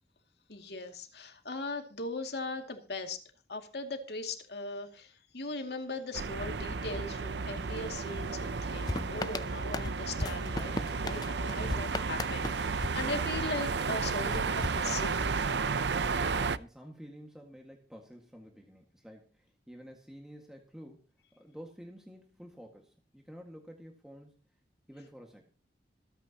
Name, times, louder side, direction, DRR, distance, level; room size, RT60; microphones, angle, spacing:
voice 1, 0.5-3.2 3.5-15.2, left 2 dB, 65° left, 5 dB, 2.4 m, -39 dB
sound 1, 6.1-16.6, right 4 dB, 75° right, 0.7 m, -33 dB
sound 2, 8.9-13.7 14.3-15.5, left 2 dB, 20° left, 0.6 m, -38 dB
voice 2, 15.9-24.6 24.9-25.5, equal, 5° right, 1 dB, 1.8 m, -51 dB
26.0 x 9.1 x 2.9 m, 0.33 s
head